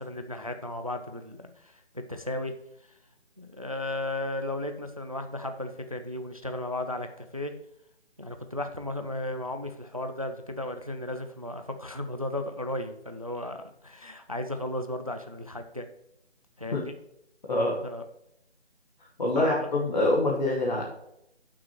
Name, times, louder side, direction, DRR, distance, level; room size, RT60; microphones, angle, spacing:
voice 1, 0.0-2.5 3.4-7.5 8.2-15.9 16.6-16.9 17.8-18.0 19.3-19.7, left 1 dB, 30° right, 7 dB, 0.5 m, -35 dB
voice 2, 17.5-17.8 19.2-20.9, left 2 dB, 40° left, -3 dB, 1.4 m, -25 dB
17.5 x 6.1 x 3.1 m, 0.78 s
figure-of-eight pair, 175°, 34 cm